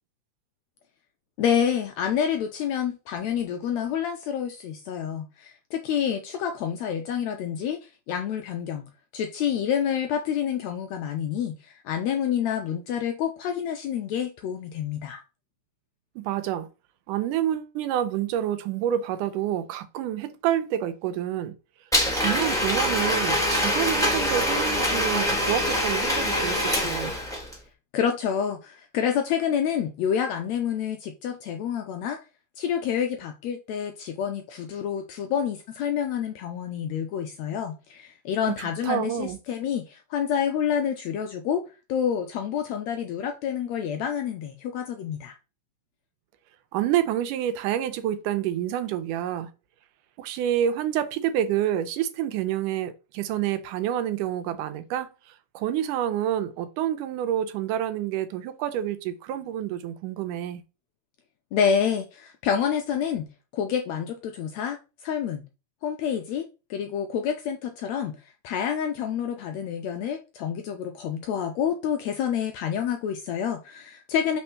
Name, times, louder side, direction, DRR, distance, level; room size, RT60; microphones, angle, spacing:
voice 1, 1.4-7.8 8.1-8.8 9.1-15.2 27.9-32.2 32.6-41.6 41.9-45.3 61.5-65.4 65.8-74.4, left 8 dB, 85° left, 1.6 m, -28 dB
voice 2, 16.2-16.7 17.1-21.5 22.1-27.1 38.5-39.4 46.7-49.5 50.2-60.6, right 11 dB, 85° right, 2.2 m, -28 dB
Domestic sounds home sounds, 21.9-27.6, equal, 5° left, 0.5 m, -24 dB
4.4 x 4.4 x 5.7 m
omnidirectional pair, 3.7 m